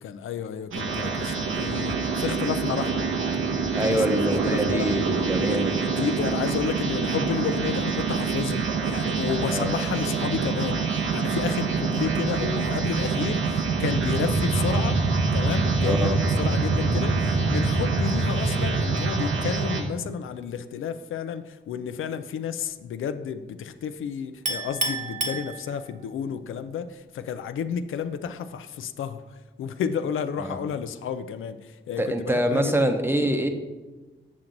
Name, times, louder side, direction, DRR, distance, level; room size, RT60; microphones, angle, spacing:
voice 1, 0.0-3.1 3.8-5.0 5.5-15.0 15.3-29.2 29.6-32.7, left 7 dB, 80° left, 11 dB, 0.4 m, -31 dB
sound 1, 0.7-19.8, right 4 dB, 90° right, 1.0 m, -25 dB
voice 2, 3.7-5.8 9.4-9.7 15.8-16.2 30.4-30.6 32.0-33.5, right 1 dB, 10° right, 5 dB, 0.8 m, -25 dB
Chink clink, 24.5-26.1, right 2 dB, 35° right, 0.9 m, -30 dB
7.3 x 5.9 x 3.9 m, 1.2 s
cardioid pair, 85°, 20 cm